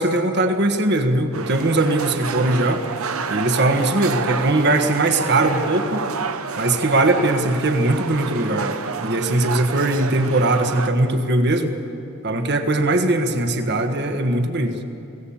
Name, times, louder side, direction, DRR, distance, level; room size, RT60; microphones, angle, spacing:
voice 1, 0.0-2.8 3.3-6.0 6.6-11.7 12.2-14.8, right 2 dB, 55° right, 6 dB, 1.5 m, -20 dB
sound 1, 1.3-10.9, right 5 dB, 90° right, 1.0 m, -29 dB
24.0 x 17.0 x 7.3 m, 2.9 s
head